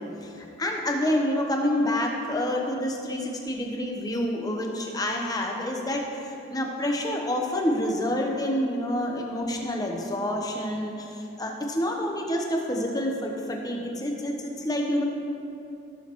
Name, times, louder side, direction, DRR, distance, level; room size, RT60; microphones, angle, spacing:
voice 1, 0.2-15.0, left 1 dB, 20° left, 1 dB, 0.9 m, -28 dB
16.0 x 6.5 x 3.1 m, 2.8 s
head